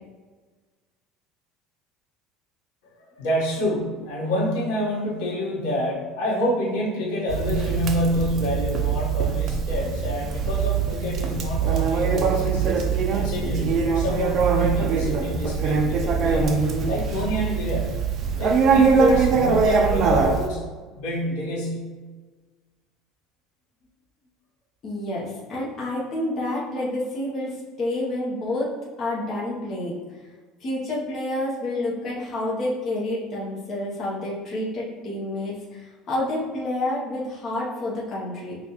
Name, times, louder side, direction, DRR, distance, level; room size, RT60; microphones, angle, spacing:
voice 1, 2.8-12.9 13.1-16.6 16.9-17.9 18.4-20.7 21.0-21.9, equal, 85° left, -4 dB, 1.1 m, -27 dB
Conversation, 7.3-20.5, right 5 dB, 35° right, 0.4 m, -22 dB
voice 2, 24.8-29.9 30.6-38.6, left 1 dB, 30° left, -6 dB, 0.7 m, -29 dB
5.3 x 2.3 x 2.9 m, 1.4 s
cardioid pair, 165°, 0 cm